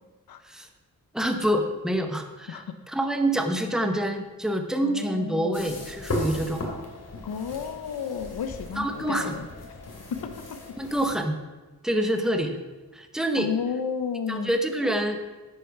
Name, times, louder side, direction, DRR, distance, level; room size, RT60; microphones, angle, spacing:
voice 1, 1.1-6.7 8.8-9.4 10.8-11.4 11.8-12.6 12.9-13.5 14.3-15.2, right 1 dB, ahead, 5 dB, 1.1 m, -26 dB
voice 2, 4.8-5.7 7.2-9.5 10.1-10.2 13.4-14.6, left 6 dB, 80° left, 9 dB, 1.0 m, -32 dB
sound 1, 5.5-11.1, left 1 dB, 45° left, 2.8 m, -36 dB
10.0 x 8.5 x 6.0 m, 1.2 s
wide cardioid pair, 110°, 36 cm